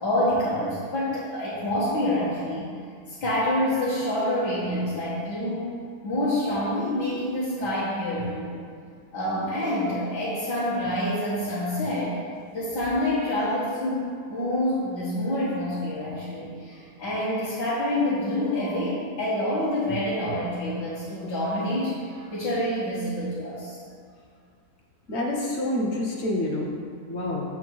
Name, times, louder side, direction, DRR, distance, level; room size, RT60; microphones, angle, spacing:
voice 1, 0.0-2.7 3.1-5.7 6.0-8.5 9.1-12.2 12.5-23.8, left 1 dB, 75° left, -11 dB, 1.9 m, -27 dB
voice 2, 25.1-26.7 27.1-27.4, left 1 dB, 50° left, -2 dB, 1.0 m, -27 dB
7.0 x 4.4 x 4.5 m, 2.2 s
omnidirectional pair, 1.9 m